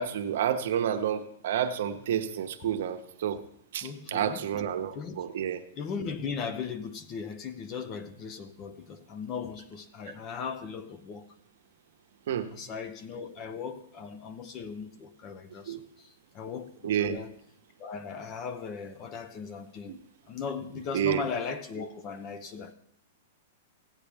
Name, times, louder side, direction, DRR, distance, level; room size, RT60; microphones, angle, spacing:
voice 1, 0.0-3.4 3.7-5.6 12.3-12.5 15.7-15.8 16.8-17.2 19.9-20.0 20.9-21.2, right 9 dB, 65° right, 0.9 m, -29 dB
voice 2, 3.8-4.4 4.9-5.3 5.8-11.3 12.5-17.4 17.8-20.0 20.3-22.7, left 6 dB, 30° left, 0.8 m, -38 dB
15.5 x 8.5 x 3.4 m
hypercardioid pair, 150°, 0 cm